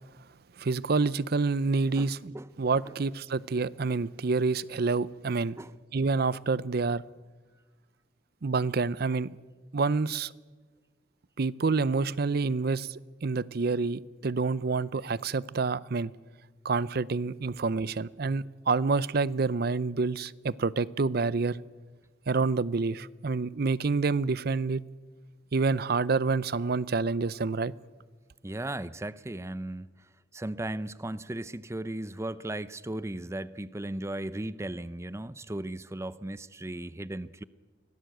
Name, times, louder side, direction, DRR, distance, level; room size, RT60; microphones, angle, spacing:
voice 1, 0.6-5.6 5.9-7.0 8.4-9.3 9.7-10.3 11.4-16.1 16.6-21.6 22.3-24.8 25.5-27.7, right 4 dB, 60° right, 0.6 m, -28 dB
voice 2, 2.0-2.5 2.8-3.0 5.6-5.7 28.4-29.9 30.3-37.4, right 1 dB, 15° right, 0.6 m, -36 dB
24.5 x 17.5 x 7.9 m
head